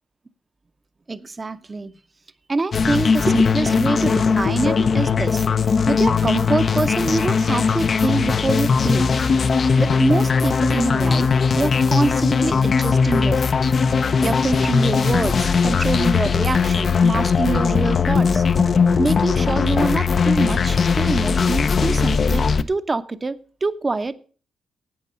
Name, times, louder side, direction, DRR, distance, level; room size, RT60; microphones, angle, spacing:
voice 1, 1.1-1.9 2.5-5.4 5.9-9.1 9.8-13.5 14.2-18.4 19.0-23.4 23.6-24.1, right 3 dB, 35° right, 12 dB, 0.8 m, -25 dB
sound 1, 2.7-22.6, left 5 dB, 55° left, 0.6 m, -19 dB
11.5 x 8.2 x 5.6 m, 0.40 s
supercardioid pair, 55°, 0 cm